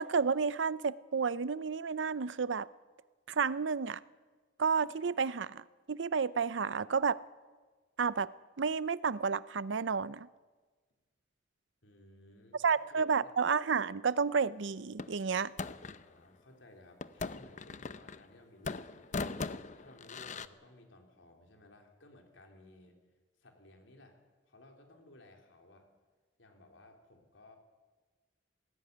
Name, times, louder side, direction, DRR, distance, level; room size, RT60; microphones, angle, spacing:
voice 1, 0.0-2.7 3.3-4.0 4.6-7.2 8.0-8.3 8.6-10.3 12.6-15.5, right 5 dB, 75° right, 0.6 m, -31 dB
voice 2, 11.8-13.2 15.8-19.4 19.7-23.0 23.4-24.2 24.4-25.9 26.4-27.6, left 1 dB, 85° left, 3.8 m, -58 dB
sound 1, 15.0-16.0 17.0-18.4 18.6-20.5, left 3 dB, 40° left, 0.7 m, -40 dB
19.0 x 16.5 x 9.6 m
head